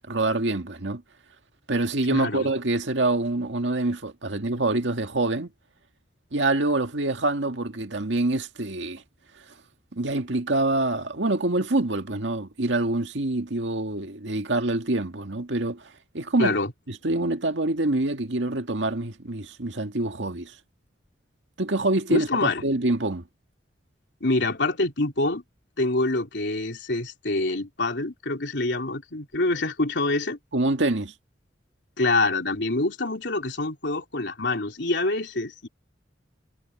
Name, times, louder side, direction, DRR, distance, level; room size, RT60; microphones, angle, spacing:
voice 1, 0.1-1.0 1.7-5.5 6.3-9.0 9.9-16.6 16.9-20.5 21.6-23.2 30.5-31.1, right 2 dB, 80° right, 1.9 m, -26 dB
voice 2, 2.1-2.5 16.4-16.7 22.1-22.6 24.2-25.4 25.8-30.4 32.0-35.7, left 2 dB, 70° left, 3.7 m, -26 dB
head